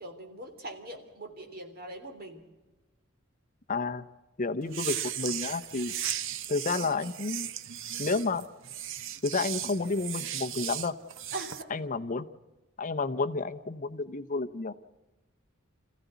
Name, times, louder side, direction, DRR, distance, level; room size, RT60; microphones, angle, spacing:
voice 1, 0.0-2.4 11.3-11.7, right 1 dB, 45° right, 5 dB, 3.4 m, -41 dB
voice 2, 3.7-4.0 4.4-5.9 6.5-7.5 8.0-8.5 9.2-10.9 11.7-12.3 12.8-14.7, left 3 dB, 40° left, 10 dB, 0.7 m, -30 dB
sound 1, 4.7-11.6, right 11 dB, 65° right, 0.8 m, -36 dB
26.5 x 15.5 x 8.1 m, 1.1 s
head